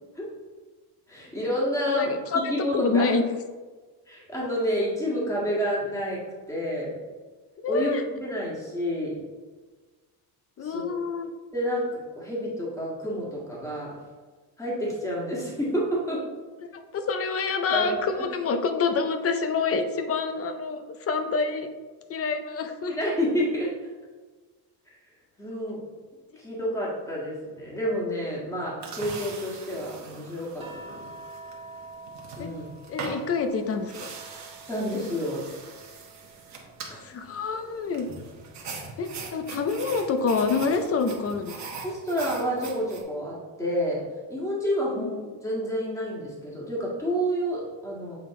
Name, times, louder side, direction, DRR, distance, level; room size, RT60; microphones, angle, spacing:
voice 1, 1.1-2.2 2.5-3.1 4.1-6.2 6.5-6.9 7.7-9.2 10.6-11.0 11.5-13.9 14.6-16.2 17.7-18.2 22.9-23.7 25.4-25.8 26.4-30.7 32.4-32.7 34.7-35.4 36.9-37.0 41.8-44.0 44.3-48.2, equal, 5° left, -5 dB, 1.6 m, -29 dB
voice 2, 1.9-2.4 2.7-3.2 7.6-8.0 10.6-11.3 16.7-21.7 22.1-23.0 32.4-32.5 32.9-34.1 37.0-38.1 39.0-41.6 45.0-45.1, left 4 dB, 35° left, 7 dB, 0.5 m, -27 dB
sound 1, 28.8-43.0, right 4 dB, 40° right, 1.2 m, -42 dB
sound 2, 30.6-35.1 35.4-37.1 38.6-38.8, right 3 dB, 15° right, 1.8 m, -47 dB
7.7 x 3.9 x 3.7 m, 1.4 s
cardioid pair, 155°, 42 cm